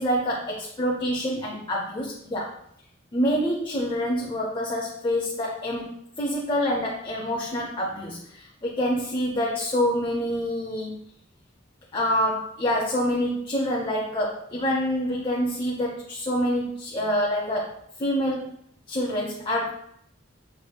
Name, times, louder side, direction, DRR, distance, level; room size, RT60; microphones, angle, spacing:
voice 1, 0.0-2.5 3.1-5.9 6.2-11.0 11.9-17.7 18.0-18.6 18.9-19.7, equal, 25° left, -2 dB, 0.5 m, -26 dB
6.5 x 3.4 x 2.2 m, 0.71 s
head